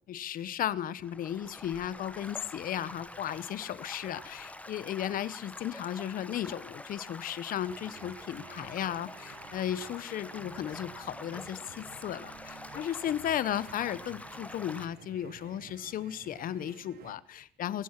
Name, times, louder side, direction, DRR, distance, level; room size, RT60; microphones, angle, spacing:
voice 1, 0.1-17.8, left 10 dB, 55° left, 18 dB, 0.8 m, -35 dB
Stream / Gurgling / Trickle dribble, 1.0-14.9, left 2 dB, 10° left, 0.9 m, -46 dB
sound 1, 7.7-17.1, right 9 dB, 65° right, 1.2 m, -53 dB
22.5 x 7.6 x 5.9 m, 0.62 s
cardioid pair, 110°, 17 cm